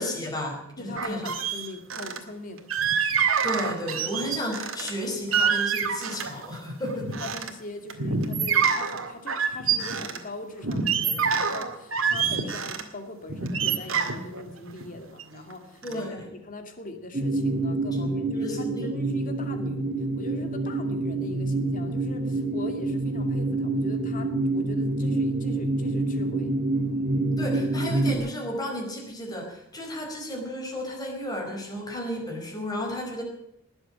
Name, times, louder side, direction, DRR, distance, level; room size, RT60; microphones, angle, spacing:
voice 1, 0.0-1.3 3.4-7.2 15.8-16.3 18.0-18.1 18.4-18.9 27.4-33.2, left 1 dB, 20° left, 1 dB, 4.8 m, -33 dB
voice 2, 0.8-2.7 6.9-26.5, left 2 dB, 40° left, 5 dB, 2.4 m, -41 dB
sound 1, 1.0-2.2 2.7-4.9 5.3-6.5 6.9-7.5 7.9-10.2 10.6-12.8 13.3-15.5 15.8-16.1, right 6 dB, 85° right, 2.0 m, -26 dB
sound 2, 17.1-28.1, right 2 dB, 45° right, 2.9 m, -27 dB
20.0 x 7.9 x 8.7 m, 0.78 s
head